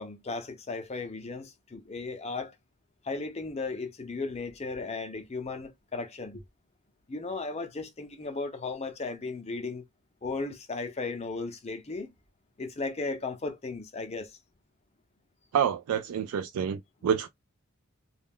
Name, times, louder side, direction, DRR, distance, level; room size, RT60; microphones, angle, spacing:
voice 1, 0.0-2.5 3.0-6.4 7.1-9.8 10.2-12.1 12.6-14.3, left 3 dB, 30° left, 0.5 m, -35 dB
voice 2, 15.5-17.3, right 8 dB, 85° right, 0.3 m, -28 dB
2.3 x 2.2 x 3.5 m
head